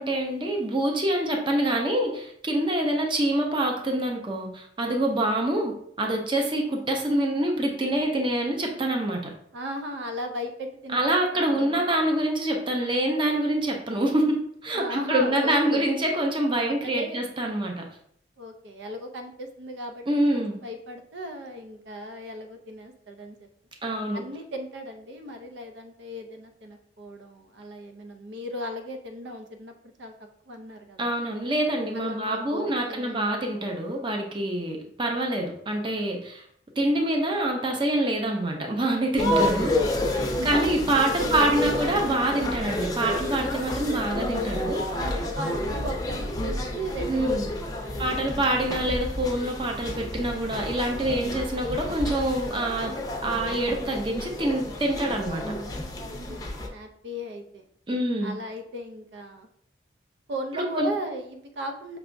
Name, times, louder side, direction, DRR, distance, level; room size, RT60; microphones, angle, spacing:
voice 1, 0.0-9.3 10.9-17.8 20.1-20.6 23.8-24.2 31.0-36.4 36.8-40.0 40.4-44.8 47.1-47.5 48.0-53.0 53.2-55.4 57.9-58.3 60.5-60.9, right 1 dB, 30° right, 2 dB, 0.6 m, -26 dB
voice 2, 9.5-11.9 14.7-15.9 16.6-17.2 18.4-23.5 24.1-29.7 30.0-30.1 30.5-31.1 31.9-33.4 40.4-41.8 44.9-48.3 56.0-57.7 58.2-59.5 60.3-62.0, equal, 85° right, 5 dB, 0.6 m, -37 dB
sound 1, 39.2-56.7, left 1 dB, 20° left, 0.6 m, -30 dB
5.9 x 3.3 x 2.6 m, 0.67 s
head